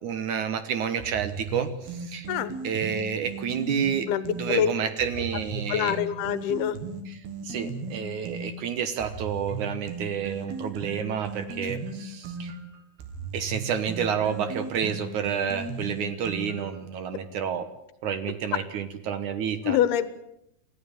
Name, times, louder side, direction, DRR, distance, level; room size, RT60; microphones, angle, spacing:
voice 1, 0.0-2.3 2.6-6.0 7.1-12.5 13.3-17.7 18.0-19.8, right 7 dB, 65° right, 10 dB, 2.2 m, -30 dB
sound 1, 1.0-4.5 5.0-8.5 9.0-16.8, right 3 dB, 85° right, 4.4 m, -36 dB
voice 2, 4.1-4.7 5.7-6.8 19.6-20.1, left 10 dB, 85° left, 14 dB, 3.2 m, -25 dB
27.0 x 14.5 x 8.9 m, 0.81 s
omnidirectional pair, 4.4 m